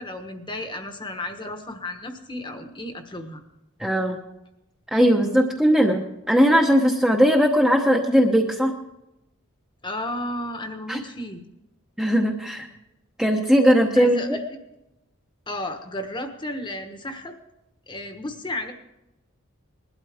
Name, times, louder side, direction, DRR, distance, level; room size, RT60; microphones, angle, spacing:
voice 1, 0.0-3.4 9.8-11.4 14.0-14.4 15.5-17.4 17.9-18.7, left 1 dB, 20° left, 6 dB, 1.2 m, -33 dB
voice 2, 3.8-4.2 4.9-8.7 10.9-11.0 12.0-12.7 13.2-14.4, equal, 5° right, 1 dB, 0.9 m, -19 dB
20.0 x 12.0 x 3.5 m, 0.89 s
head